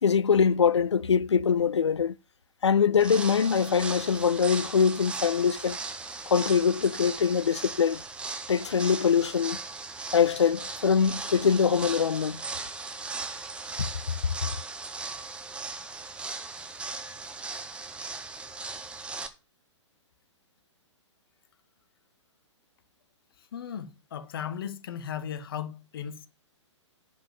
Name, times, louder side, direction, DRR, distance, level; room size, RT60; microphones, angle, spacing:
voice 1, 0.0-2.1 2.6-5.8 6.3-8.0 8.5-9.6 10.1-12.4 13.8-13.9, left 6 dB, 65° left, 0.6 m, -23 dB
sound 1, 2.9-19.3, right 3 dB, 5° right, 0.9 m, -38 dB
voice 2, 23.4-26.3, left 8 dB, 50° left, 1.3 m, -36 dB
10.5 x 4.8 x 7.0 m
figure-of-eight pair, 120°, 16 cm